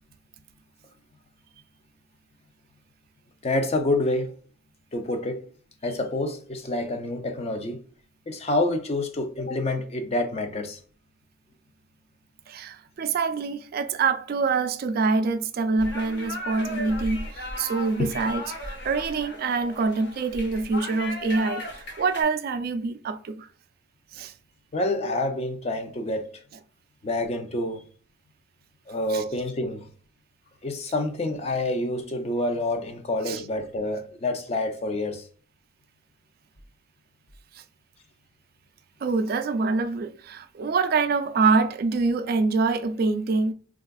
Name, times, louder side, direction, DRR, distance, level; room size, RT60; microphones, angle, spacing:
voice 1, 3.4-4.4 4.9-5.5 5.8-7.8 8.3-10.8 18.0-18.1 24.7-26.4 27.0-27.8 28.9-29.9 30.6-35.2, left 2 dB, 35° left, 0.5 m, -27 dB
voice 2, 12.5-23.5 24.1-24.3 29.1-29.2 33.2-33.4 37.5-37.6 39.0-43.5, right 4 dB, 50° right, 0.3 m, -25 dB
sound 1, 15.8-22.2, left 1 dB, 60° left, 1.0 m, -36 dB
3.3 x 2.4 x 2.2 m
head